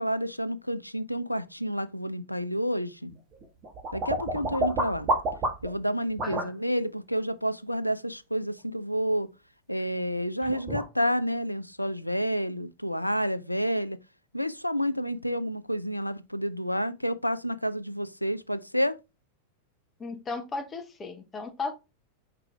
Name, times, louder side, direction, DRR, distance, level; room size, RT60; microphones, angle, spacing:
voice 1, 0.0-3.1 3.9-5.1 5.6-9.3 9.7-14.0 14.3-19.0, equal, 90° left, 0.3 m, -29 dB
sound 1, 3.1-5.8 6.2-6.5 10.0-10.1 10.4-10.9, right 1 dB, 35° right, 1.5 m, -29 dB
voice 2, 20.0-21.7, left 4 dB, 20° left, 0.8 m, -35 dB
4.8 x 4.7 x 2.2 m
figure-of-eight pair, 90°, 0 cm